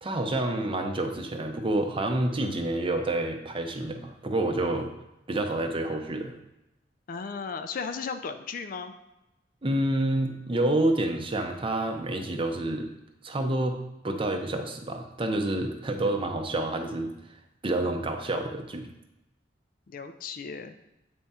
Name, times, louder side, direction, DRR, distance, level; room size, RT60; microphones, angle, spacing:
voice 1, 0.0-4.9 5.3-6.3 9.6-12.9 13.2-17.1 17.6-18.9, right 1 dB, 30° right, 5 dB, 0.6 m, -28 dB
voice 2, 7.1-8.9 19.9-20.8, left 5 dB, 50° left, 8 dB, 0.4 m, -35 dB
7.7 x 3.5 x 4.2 m, 0.92 s
head